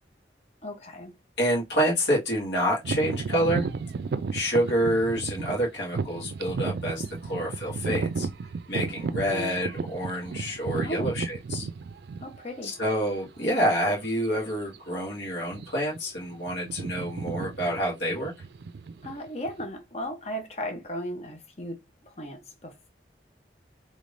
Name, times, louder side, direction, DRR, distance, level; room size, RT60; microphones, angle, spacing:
voice 1, 0.6-1.2 9.0-9.6 10.8-11.1 12.2-12.7 19.0-22.9, equal, 35° left, 0.8 m, -36 dB
voice 2, 1.4-3.7 4.3-8.3 8.7-11.7 12.6-18.3, equal, 85° left, 1.8 m, -27 dB
sound 1, 2.8-12.6 13.3-13.4 14.0-14.3 14.5-14.8 15.4-16.0 16.2-19.6, right 4 dB, 65° right, 0.3 m, -33 dB
3.5 x 3.1 x 2.6 m
head